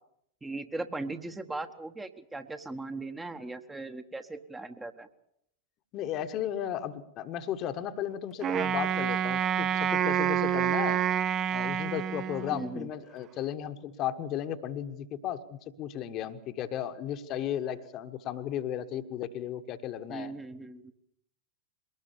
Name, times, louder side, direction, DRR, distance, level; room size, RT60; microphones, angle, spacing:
voice 1, 0.4-5.1 12.5-12.9 20.1-20.9, right 2 dB, 10° right, 7 dB, 1.2 m, -38 dB
voice 2, 5.9-11.0 11.5-20.3, left 10 dB, 35° left, 8 dB, 1.3 m, -35 dB
Wind instrument woodwind instrument, 8.4-12.8, right 9 dB, 30° right, 0.8 m, -28 dB
22.5 x 19.0 x 7.0 m, 0.76 s
figure-of-eight pair, 90°, 0 cm